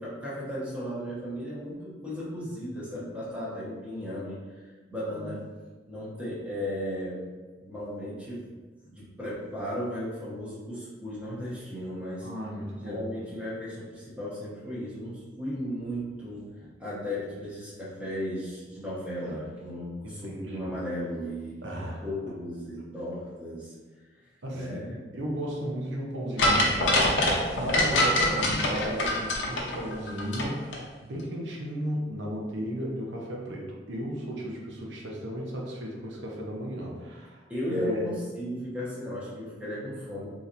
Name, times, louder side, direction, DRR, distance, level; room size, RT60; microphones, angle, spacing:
voice 1, 0.0-5.5 5.9-7.3 7.6-8.5 8.8-12.3 12.8-21.6 22.0-23.8 24.5-25.0 29.4-29.5 37.5-40.3, equal, 5° right, -8 dB, 1.0 m, -35 dB
voice 2, 12.2-13.3 20.0-20.7 21.6-22.0 24.4-27.3 27.5-37.4 37.7-38.1, equal, 85° right, -2 dB, 0.7 m, -34 dB
sound 1, 26.4-30.5 30.7-30.8, left 1 dB, 80° left, 0.7 m, -24 dB
4.1 x 2.9 x 2.6 m, 1.3 s
head